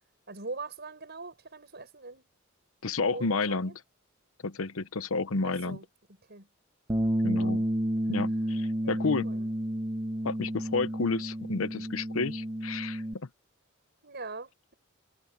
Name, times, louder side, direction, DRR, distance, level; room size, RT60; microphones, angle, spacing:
voice 1, 0.3-2.3 3.1-3.8 5.4-5.9 6.3-6.5 7.3-7.5 8.8-9.5 14.0-14.7, right 3 dB, 55° right, 6.4 m, -42 dB
voice 2, 2.8-3.7 4.4-5.8 7.2-7.6 8.1-9.3 10.2-13.0, left 3 dB, 80° left, 0.9 m, -30 dB
Bass guitar, 6.9-13.1, equal, 20° right, 1.7 m, -31 dB
head